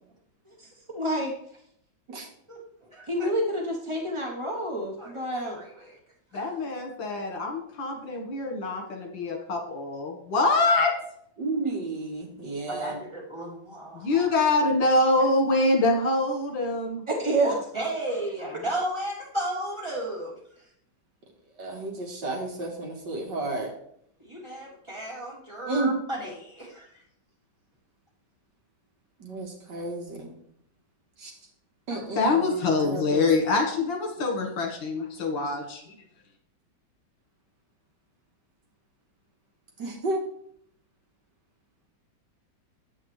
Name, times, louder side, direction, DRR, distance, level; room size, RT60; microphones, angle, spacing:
voice 1, 0.6-1.4 3.1-5.6 17.1-17.7, right 1 dB, 40° right, 0 dB, 0.4 m, -28 dB
voice 2, 2.9-3.3 5.0-5.2 5.5-5.7 6.3-6.5 12.7-14.3 17.7-20.3 24.2-26.9, right 1 dB, 15° right, -7 dB, 3.8 m, -34 dB
voice 3, 6.3-10.9 13.9-17.0 31.9-35.8, left 2 dB, 70° left, 1 dB, 2.1 m, -25 dB
voice 4, 11.4-13.0 21.6-23.7 25.7-25.9 29.2-30.3 31.2-31.3 31.9-32.5 32.8-33.3 39.8-40.2, right 2 dB, 65° right, 1 dB, 2.0 m, -32 dB
8.9 x 7.8 x 3.2 m, 0.68 s
omnidirectional pair, 2.1 m